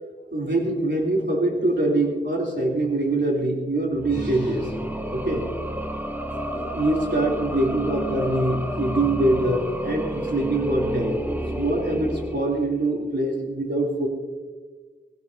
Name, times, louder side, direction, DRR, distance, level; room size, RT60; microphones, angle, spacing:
voice 1, 0.3-4.7 5.1-5.5 6.3-11.2 11.5-14.1, right 2 dB, 60° right, -2 dB, 3.3 m, -24 dB
sound 1, 3.9-13.0, equal, 10° right, 1.0 m, -31 dB
22.0 x 16.0 x 2.8 m, 1.4 s
wide cardioid pair, 45°, 20 cm